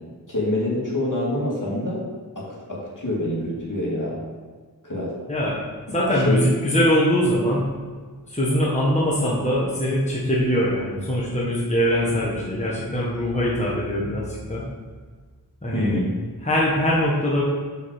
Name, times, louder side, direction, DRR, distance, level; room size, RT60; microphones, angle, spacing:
voice 1, 0.3-2.0 2.4-4.2 4.8-5.1 6.1-6.4 15.7-16.1, left 1 dB, 50° left, -5 dB, 2.3 m, -26 dB
voice 2, 5.9-7.7 8.3-14.7 15.6-15.9 16.4-17.4, equal, 15° left, -6 dB, 1.4 m, -22 dB
5.5 x 4.8 x 6.5 m, 1.5 s
wide cardioid pair, 50°, 40 cm